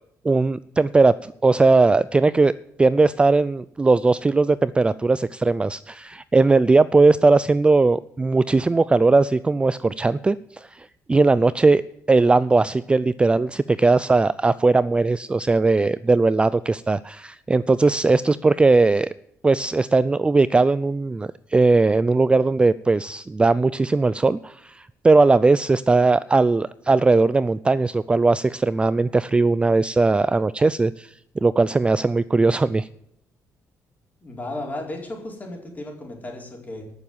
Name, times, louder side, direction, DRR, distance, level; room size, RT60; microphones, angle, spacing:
voice 1, 0.2-2.5 2.8-11.8 12.1-19.1 19.4-31.1 31.4-32.9, right 3 dB, 20° right, 17 dB, 0.4 m, -19 dB
voice 2, 34.2-36.9, left 1 dB, 30° left, 0 dB, 4.4 m, -34 dB
14.5 x 6.9 x 7.3 m, 0.77 s
cardioid pair, 95°, 6 cm